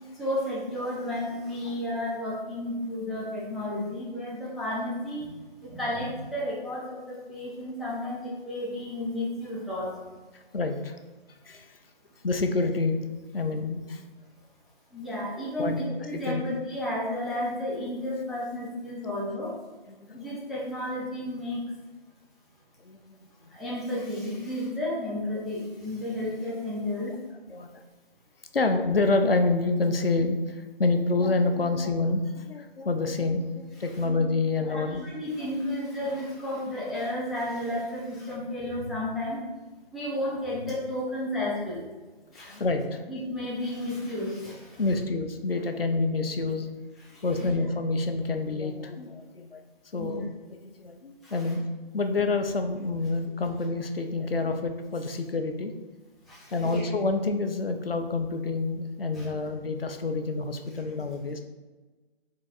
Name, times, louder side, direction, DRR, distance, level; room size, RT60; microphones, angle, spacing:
voice 1, 0.1-9.9 14.9-19.5 20.1-21.6 23.5-27.1 34.0-34.3 34.7-39.4 39.9-41.8 42.3-42.6 43.1-44.8 47.0-47.5 50.0-50.2 51.2-51.5 56.3-56.8 59.1-59.3, left 1 dB, ahead, -7 dB, 0.4 m, -32 dB
voice 2, 10.5-11.0 11.5-11.7 12.2-13.0 13.3-14.0 15.6-15.8 16.1-16.4 19.9-20.4 22.8-23.2 27.5-27.8 28.5-35.1 42.3-43.1 44.8-46.7 47.2-49.6 49.9-50.3 50.8-55.7 56.5-61.4, left 3 dB, 70° left, 6 dB, 0.5 m, -28 dB
3.8 x 2.5 x 4.0 m, 1.3 s
figure-of-eight pair, 155°, 30 cm